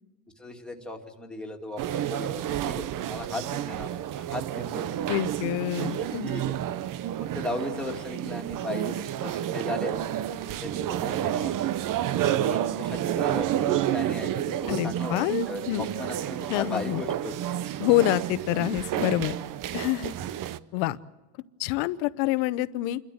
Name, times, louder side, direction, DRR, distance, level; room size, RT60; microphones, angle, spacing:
voice 1, 0.4-5.1 5.8-6.5 7.2-11.6 12.2-17.3, left 1 dB, ahead, 1 dB, 2.4 m, -37 dB
sound 1, 1.8-20.6, right 12 dB, 40° right, 0.8 m, -30 dB
voice 2, 5.1-6.3 14.7-15.8 16.5-17.0 17.8-19.4 19.7-20.1 20.7-21.0 21.6-23.0, left 16 dB, 80° left, 15 dB, 1.0 m, -26 dB
29.0 x 12.5 x 8.0 m, 1.2 s
cardioid pair, 130°, 49 cm